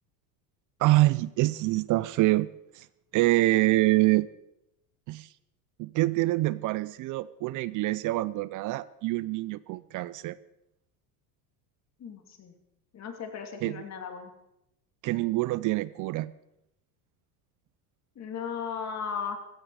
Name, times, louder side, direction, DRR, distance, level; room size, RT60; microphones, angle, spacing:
voice 1, 0.8-2.5 2.7-2.9 3.1-4.3 5.1-5.3 5.8-10.4 13.6-13.8 15.0-16.3, right 18 dB, 45° right, 19 dB, 0.5 m, -25 dB
voice 2, 12.0-12.5 12.9-14.3 18.2-19.4, left 6 dB, 35° left, 5 dB, 2.6 m, -36 dB
16.0 x 13.5 x 4.8 m, 0.85 s
supercardioid pair, 115°, 46 cm